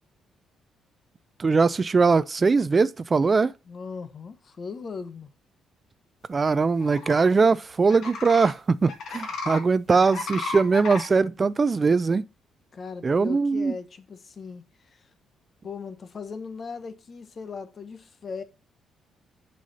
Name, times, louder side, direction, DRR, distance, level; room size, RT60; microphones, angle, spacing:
voice 1, 1.4-3.5 6.3-12.2 13.0-13.7, right 4 dB, 35° right, 0.3 m, -21 dB
voice 2, 3.6-5.3 12.7-15.1 15.6-18.4, left 5 dB, 45° left, 0.9 m, -38 dB
sound 1, 6.8-7.3 7.9-8.5 8.9-9.6 9.9-11.1, left 4 dB, 70° left, 1.6 m, -33 dB
6.2 x 5.6 x 4.1 m
cardioid pair, 90°, 0 cm